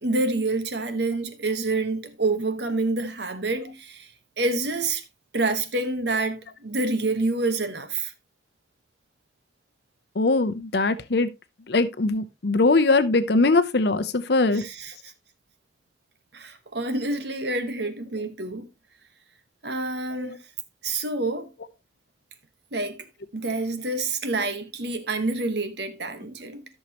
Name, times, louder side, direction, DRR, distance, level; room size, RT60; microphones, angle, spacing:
voice 1, 0.0-4.1 4.4-5.0 5.3-8.1 14.5-15.1 16.3-18.7 19.6-20.4 20.8-21.5 22.7-23.0 23.3-26.6, right 2 dB, 65° right, 1.2 m, -27 dB
voice 2, 10.2-11.3 11.7-14.6 20.2-20.3, left 3 dB, 60° left, 0.7 m, -21 dB
13.5 x 6.5 x 2.9 m
head